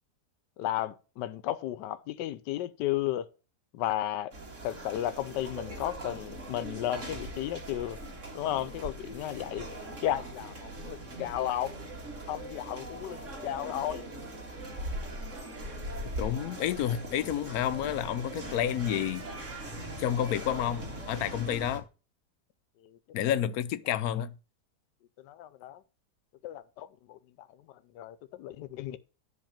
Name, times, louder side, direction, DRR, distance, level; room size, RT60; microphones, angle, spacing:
voice 1, 0.6-3.3 3.7-4.3 4.6-8.0 8.3-9.7 10.0-11.7 12.3-14.1 22.8-23.4 23.9-24.0 25.2-25.8 26.4-29.0, left 12 dB, 85° left, 1.2 m, -34 dB
sound 1, 4.3-21.8, right 1 dB, 45° right, 2.4 m, -41 dB
voice 2, 16.2-19.2 20.0-21.8 23.1-24.4, left 10 dB, 65° left, 1.0 m, -30 dB
10.5 x 4.0 x 7.3 m
omnidirectional pair, 1.8 m